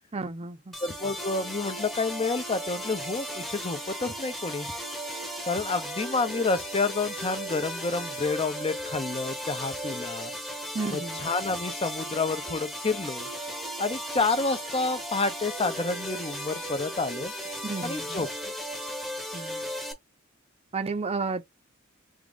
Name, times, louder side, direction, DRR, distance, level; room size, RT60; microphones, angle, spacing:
voice 1, 0.1-0.7 10.7-11.2 17.6-18.2 19.3-19.7 20.7-21.4, right 3 dB, 30° right, 0.5 m, -32 dB
sound 1, 0.7-19.9, equal, ahead, 0.8 m, -36 dB
voice 2, 0.8-4.7 5.5-10.3 10.9-13.3 13.8-17.3 17.8-18.3, left 3 dB, 25° left, 0.5 m, -29 dB
3.6 x 2.4 x 3.5 m
head